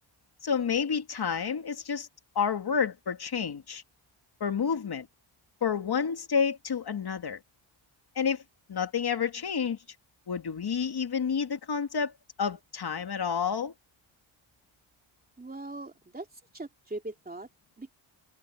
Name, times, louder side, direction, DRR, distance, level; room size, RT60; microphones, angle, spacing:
voice 1, 0.4-2.1 2.4-3.8 4.4-5.1 5.6-7.4 8.2-8.4 8.7-9.8 10.3-12.1 12.4-13.7, left 6 dB, 50° left, 2.2 m, -29 dB
voice 2, 15.4-16.3 16.5-17.5 17.8-17.9, right 2 dB, 20° right, 3.1 m, -40 dB
wide cardioid pair, 120°, 48 cm